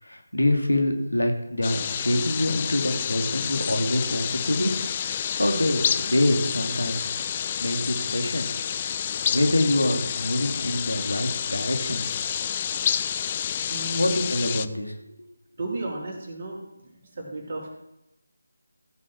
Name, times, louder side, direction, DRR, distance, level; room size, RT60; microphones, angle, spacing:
voice 1, 0.0-4.7 5.1-7.1 7.6-8.5 9.3-12.0 13.9-14.9, left 1 dB, 80° left, 3 dB, 2.7 m, -25 dB
sound 1, 1.6-14.7, left 8 dB, 25° left, 0.4 m, -29 dB
voice 2, 13.7-14.2 15.6-16.6 16.8-17.8, right 2 dB, 40° right, -1 dB, 3.8 m, -33 dB
15.5 x 6.6 x 6.0 m, 0.89 s
figure-of-eight pair, 160°, 0 cm